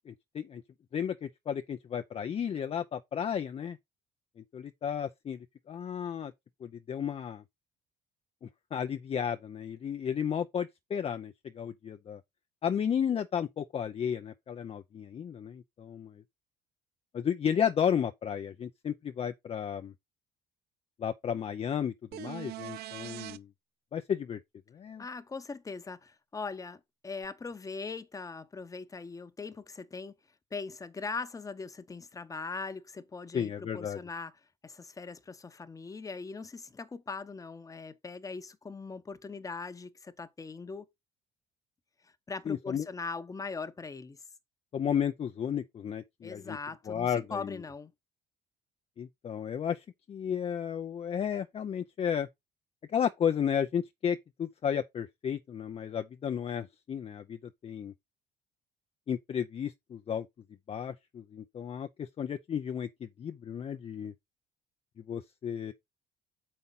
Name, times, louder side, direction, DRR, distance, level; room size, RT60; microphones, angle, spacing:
voice 1, 0.1-0.6 0.9-3.8 4.5-5.4 5.7-6.3 6.6-7.4 8.4-12.2 12.6-16.2 17.1-19.9 21.0-23.5 23.9-24.4 24.7-25.0 33.3-34.0 42.5-42.9 44.7-46.6 46.9-47.6 49.0-52.3 52.9-57.4 57.6-57.9 59.1-60.3 60.7-64.1 65.1-65.7, left 8 dB, 35° left, 0.6 m, -33 dB
sound 1, 22.1-23.4 27.2-27.3, right 16 dB, 70° right, 0.5 m, -41 dB
voice 2, 25.0-30.1 30.5-34.3 34.6-40.9 42.0-44.2 46.2-47.9, left 4 dB, 20° left, 0.9 m, -40 dB
7.0 x 5.4 x 4.0 m
cardioid pair, 110°, 17 cm